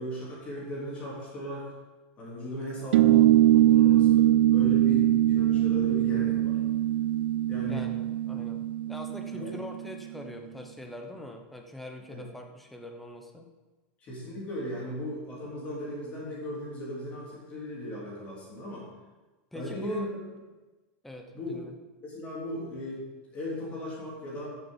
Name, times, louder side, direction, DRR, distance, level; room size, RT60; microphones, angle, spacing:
voice 1, 0.0-1.7 2.2-6.6 7.5-7.8 8.3-8.4 9.3-9.5 12.1-12.3 14.0-18.9 19.5-20.2 21.3-21.6 22.0-23.1 23.3-24.6, equal, 20° left, -5 dB, 3.6 m, -37 dB
sound 1, 2.9-9.9, right 13 dB, 65° right, 0.3 m, -22 dB
voice 2, 7.7-13.5 19.5-20.1 21.0-21.7, left 1 dB, ahead, 3 dB, 0.9 m, -43 dB
14.0 x 6.9 x 5.8 m, 1.2 s
supercardioid pair, 175°, 6 cm